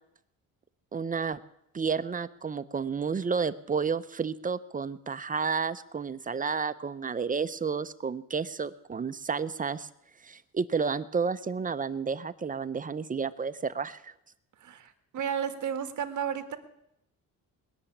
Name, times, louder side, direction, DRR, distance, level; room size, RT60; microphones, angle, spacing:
voice 1, 0.9-1.4 1.7-9.9 10.2-14.1, right 5 dB, 25° right, 13 dB, 0.6 m, -31 dB
voice 2, 14.6-16.6, right 8 dB, 60° right, 8 dB, 1.7 m, -33 dB
21.0 x 7.0 x 9.9 m, 0.80 s
cardioid pair, 130°, 33 cm